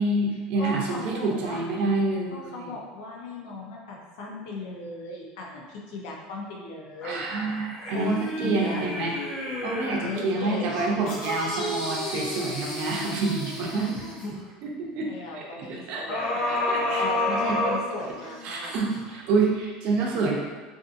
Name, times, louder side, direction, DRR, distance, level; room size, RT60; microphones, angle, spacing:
voice 1, 0.0-2.7 7.0-9.2 9.6-13.9 14.6-15.1 15.3-16.2 16.5-17.0 17.5-17.6 18.4-20.4, right 3 dB, 50° right, -1 dB, 0.6 m, -27 dB
voice 2, 0.6-1.7 2.3-7.3 7.9-8.8 10.0-11.1 13.8-14.0 15.1-18.9, left 2 dB, 85° left, -1 dB, 0.6 m, -37 dB
sound 1, 7.0-10.2 10.7-14.3 16.1-18.4 18.9-19.0, left 1 dB, 35° left, 0.7 m, -30 dB
2.6 x 2.6 x 2.5 m, 1.4 s
cardioid pair, 150°, 3 cm